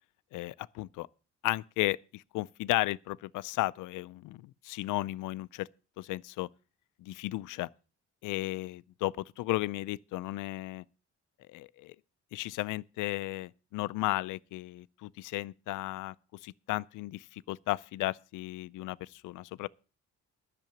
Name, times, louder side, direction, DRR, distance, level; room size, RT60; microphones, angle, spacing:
voice 1, 0.3-1.1 1.4-5.7 6.0-6.5 7.0-7.7 8.2-10.8 11.5-12.0 12.3-16.1 16.4-19.7, left 18 dB, 90° left, 0.5 m, -34 dB
10.5 x 6.8 x 8.7 m
cardioid pair, 90°, 30 cm